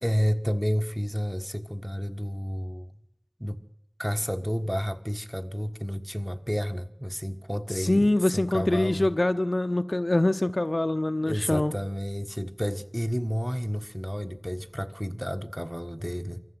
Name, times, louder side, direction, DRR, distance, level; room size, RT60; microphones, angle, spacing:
voice 1, 0.0-2.9 3.4-3.6 4.0-9.1 11.3-16.4, equal, ahead, 1.6 m, -30 dB
voice 2, 7.8-11.7, left 1 dB, 45° left, 0.7 m, -24 dB
24.5 x 14.5 x 7.9 m
wide cardioid pair, 45°, 0 cm